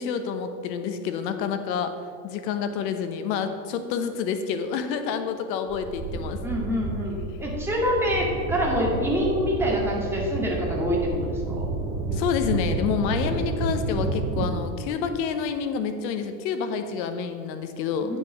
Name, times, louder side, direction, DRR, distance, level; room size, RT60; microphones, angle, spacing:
voice 1, 0.0-1.9 2.2-6.4 12.1-18.1, left 6 dB, 85° left, 8 dB, 1.1 m, -28 dB
sound 1, 5.7-14.5, right 2 dB, 30° right, 1.1 m, -30 dB
voice 2, 6.4-11.7 18.0-18.2, equal, 5° right, -4 dB, 2.1 m, -26 dB
8.9 x 5.4 x 6.4 m, 2.2 s
supercardioid pair, 135°, 49 cm